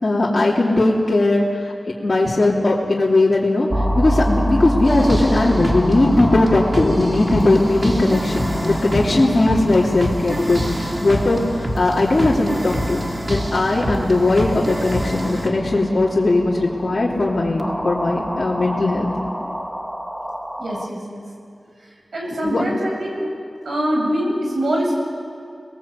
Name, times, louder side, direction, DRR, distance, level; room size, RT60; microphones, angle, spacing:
voice 1, 0.0-1.7 2.0-3.7 3.9-19.1 22.4-22.7, left 2 dB, 45° left, -6 dB, 3.2 m, -18 dB
sound 1, 3.7-20.9, equal, 5° right, 1.8 m, -28 dB
sound 2, 4.8-15.5, equal, 25° right, 3.3 m, -27 dB
sound 3, 5.5-19.3, left 2 dB, 70° left, 3.2 m, -32 dB
voice 2, 20.6-21.2 22.1-23.3 23.6-24.9, equal, 80° right, -1 dB, 7.9 m, -23 dB
30.0 x 20.5 x 8.3 m, 2.3 s
wide cardioid pair, 80°, 0 cm